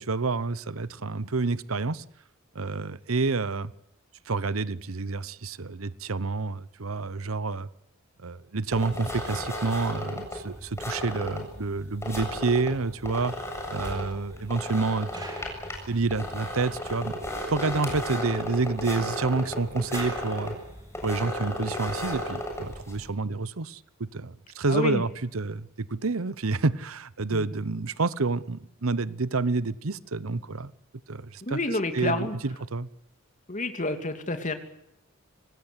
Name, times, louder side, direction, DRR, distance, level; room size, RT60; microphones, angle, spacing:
voice 1, 0.0-2.0 2.5-3.7 4.3-7.7 8.2-15.2 15.9-17.1 17.5-20.6 21.0-30.7 31.1-31.6 31.9-32.9, right 3 dB, 90° right, 18 dB, 0.9 m, -29 dB
sound 1, 8.7-23.1, left 1 dB, 15° left, 7.6 m, -35 dB
sound 2, 13.0-16.7 17.0-17.1 17.5-17.6 17.8-21.1 21.8-22.0, right 2 dB, 20° right, 6.2 m, -50 dB
voice 2, 24.7-25.0 27.3-27.5 31.4-32.3 33.5-34.5, left 2 dB, 40° left, 7 dB, 2.9 m, -29 dB
25.5 x 19.5 x 8.2 m, 0.80 s
head